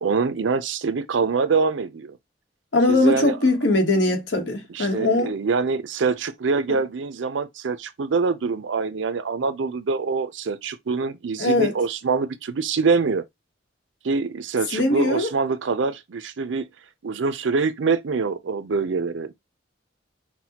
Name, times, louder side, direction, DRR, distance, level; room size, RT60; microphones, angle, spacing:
voice 1, 0.0-2.2 2.9-3.4 4.7-13.2 14.0-16.7 17.0-19.3, right 4 dB, 80° right, 0.5 m, -24 dB
voice 2, 2.7-5.3 11.4-11.7 14.7-15.3, left 2 dB, 75° left, 1.1 m, -21 dB
5.9 x 2.2 x 2.8 m
head